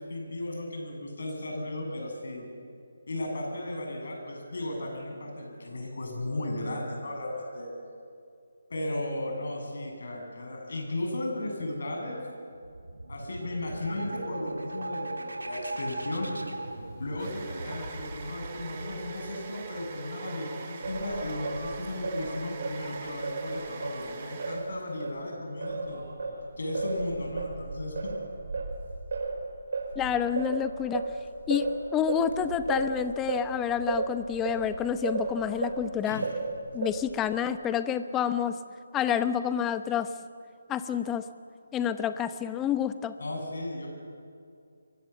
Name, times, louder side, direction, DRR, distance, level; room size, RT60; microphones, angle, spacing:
voice 1, 0.0-2.5 3.1-7.7 8.7-12.2 13.1-16.3 17.0-26.1 26.6-28.1 36.0-36.3 43.2-43.9, left 1 dB, 65° left, 1 dB, 7.8 m, -35 dB
sound 1, 12.5-20.1, right 2 dB, 85° right, 3.3 m, -39 dB
sound 2, 16.4-25.1, right 5 dB, 30° right, 3.3 m, -43 dB
Singing, 20.8-25.2 25.6-35.9 36.2-37.2, right 3 dB, 60° right, 4.6 m, -34 dB
voice 2, 30.0-31.1 31.5-36.2 36.7-38.6 38.9-40.1 40.7-41.2 41.7-43.1, left 9 dB, 15° left, 11 dB, 0.9 m, -29 dB
25.5 x 23.0 x 7.3 m, 2.4 s
figure-of-eight pair, 150°, 0 cm